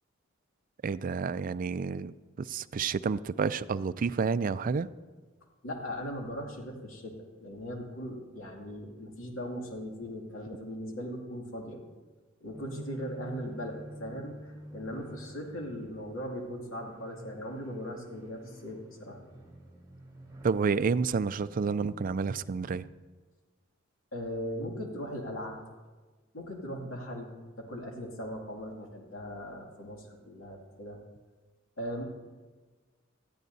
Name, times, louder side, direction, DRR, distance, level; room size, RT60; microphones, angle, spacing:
voice 1, 0.8-4.9 20.4-22.9, right 5 dB, 45° right, 14 dB, 0.4 m, -30 dB
voice 2, 5.6-11.8 12.4-19.2 24.1-25.6 26.3-31.0 31.8-32.0, equal, 90° left, 0 dB, 2.5 m, -39 dB
sound 1, 12.5-22.7, equal, 20° right, 2.7 m, -49 dB
19.5 x 13.5 x 2.7 m, 1.3 s
head